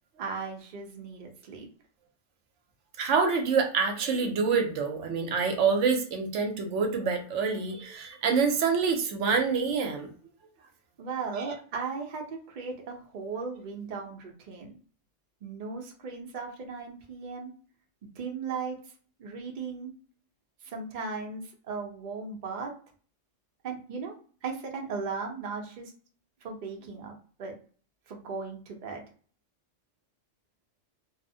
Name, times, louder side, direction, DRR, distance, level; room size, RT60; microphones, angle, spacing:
voice 1, 0.2-1.7 11.0-14.7 15.4-17.5 18.2-18.8 19.2-19.9 20.6-22.7 23.6-24.1 24.4-25.9 26.4-27.1 27.4-27.5 28.1-29.0, right 5 dB, 50° right, 1 dB, 0.6 m, -37 dB
voice 2, 3.0-10.1 11.4-11.5, right 5 dB, 85° right, 5 dB, 0.9 m, -26 dB
2.7 x 2.0 x 2.6 m, 0.42 s
omnidirectional pair, 1.2 m